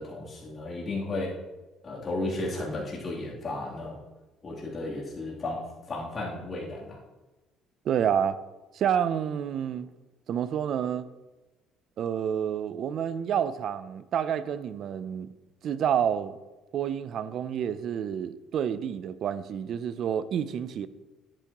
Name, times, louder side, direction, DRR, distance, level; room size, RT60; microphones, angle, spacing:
voice 1, 0.0-1.4 1.8-4.0 4.4-7.0, left 2 dB, 30° left, -5 dB, 3.1 m, -34 dB
voice 2, 7.8-8.4 8.7-9.9 10.3-11.1 12.0-15.3 15.6-16.4 16.7-20.9, right 8 dB, 55° right, 15 dB, 0.5 m, -29 dB
10.5 x 8.9 x 3.0 m, 1.1 s
cardioid pair, 120°, 0 cm